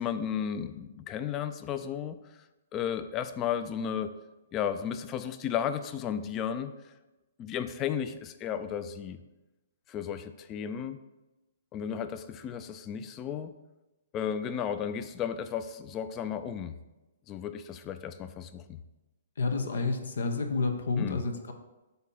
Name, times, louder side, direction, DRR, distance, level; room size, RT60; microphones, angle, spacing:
voice 1, 0.0-2.2 2.7-4.1 4.5-6.7 7.4-9.2 9.9-11.0 11.7-13.5 14.1-16.7 17.3-18.8 21.0-21.2, left 8 dB, 20° left, 11 dB, 0.4 m, -34 dB
voice 2, 19.4-21.5, left 3 dB, 80° left, 5 dB, 0.9 m, -29 dB
7.8 x 2.8 x 5.4 m, 1.0 s
hypercardioid pair, 155°, 0 cm